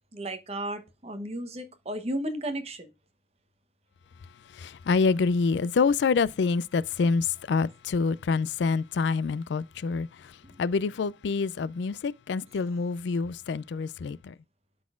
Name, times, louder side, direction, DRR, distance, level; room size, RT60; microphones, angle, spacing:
voice 1, 0.1-2.9, right 1 dB, 35° right, 1.0 m, -34 dB
voice 2, 4.6-10.1 10.6-14.3, left 4 dB, 65° left, 0.3 m, -26 dB
12.0 x 4.0 x 2.4 m
head